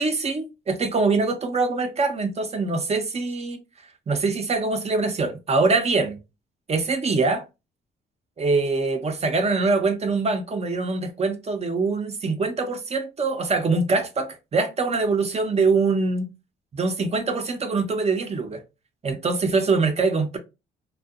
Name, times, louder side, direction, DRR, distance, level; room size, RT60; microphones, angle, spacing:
voice 1, 0.0-3.6 4.1-6.2 6.7-7.4 8.4-16.3 16.7-18.6 19.0-20.4, right 3 dB, 35° right, 0.6 m, -23 dB
2.6 x 2.3 x 2.4 m
cardioid pair, 90°, 20 cm